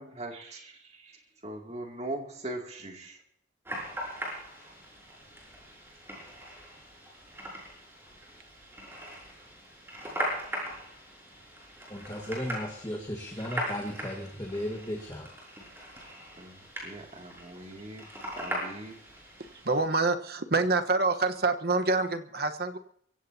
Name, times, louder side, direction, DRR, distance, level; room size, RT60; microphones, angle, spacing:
voice 1, 0.0-3.2 16.4-18.1 18.4-19.0, right 1 dB, 35° right, 1 dB, 2.6 m, -41 dB
sound 1, 3.7-19.8, equal, 15° right, 6.5 m, -40 dB
voice 2, 11.9-15.3, equal, 20° left, 1 dB, 1.7 m, -35 dB
voice 3, 19.4-22.8, right 3 dB, 55° right, 7 dB, 1.2 m, -27 dB
24.0 x 16.0 x 2.9 m, 0.67 s
head